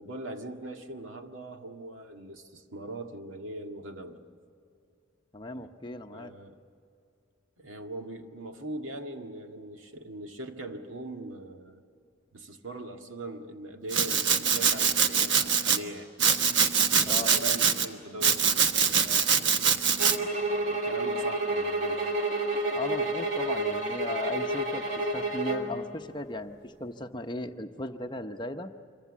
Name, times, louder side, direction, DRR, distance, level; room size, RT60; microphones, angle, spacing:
voice 1, 0.0-4.2 5.5-5.7 6.1-6.6 7.6-11.8 12.3-16.2 16.9-19.8 20.4-22.1, right 2 dB, 75° right, 4 dB, 1.9 m, -41 dB
voice 2, 5.3-6.3 17.0-17.4 22.7-28.7, left 2 dB, 20° left, 6 dB, 0.8 m, -37 dB
Domestic sounds home sounds, 13.9-15.8 16.2-17.9 18.2-20.2, right 6 dB, 55° right, 1.2 m, -24 dB
sound 1, 20.0-25.7, right 2 dB, 35° right, 3.1 m, -29 dB
26.5 x 23.5 x 7.4 m, 2.5 s
head